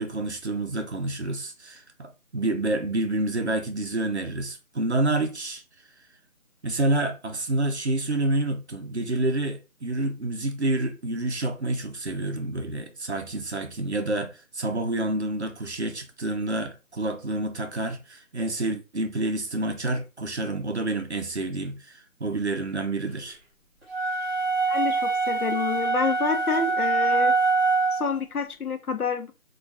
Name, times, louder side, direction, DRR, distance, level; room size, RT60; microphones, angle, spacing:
voice 1, 0.0-5.6 6.6-23.4, right 2 dB, 50° right, 0.5 m, -28 dB
sound 1, 23.9-28.2, right 3 dB, 15° right, 1.6 m, -24 dB
voice 2, 24.7-27.3 27.9-29.3, left 5 dB, 85° left, 0.7 m, -28 dB
3.0 x 2.3 x 2.6 m
figure-of-eight pair, 165°, 43 cm